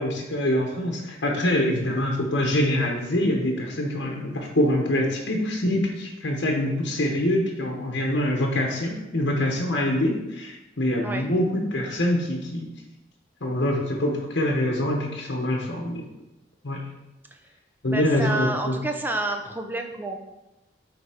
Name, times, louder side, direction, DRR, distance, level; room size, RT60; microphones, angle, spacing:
voice 1, 0.0-12.7 13.4-16.0 16.6-16.8 17.8-18.8, left 1 dB, 75° left, 0 dB, 1.2 m, -25 dB
voice 2, 17.9-20.2, right 2 dB, 10° right, 4 dB, 0.6 m, -29 dB
9.0 x 3.4 x 5.1 m, 0.98 s
head